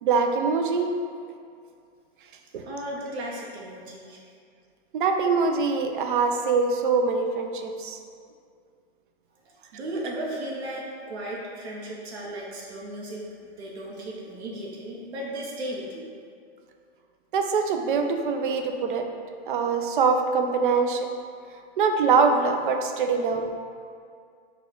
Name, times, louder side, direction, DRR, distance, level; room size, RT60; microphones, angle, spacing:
voice 1, 0.0-0.9 2.5-2.6 4.9-8.0 17.3-19.0 19.5-21.1 21.8-23.5, right 5 dB, 50° right, 5 dB, 0.4 m, -23 dB
voice 2, 2.6-4.3 9.7-13.2 13.6-16.1, right 1 dB, 80° right, -3 dB, 0.9 m, -35 dB
4.1 x 2.4 x 4.5 m, 2.2 s
hypercardioid pair, 155°, 32 cm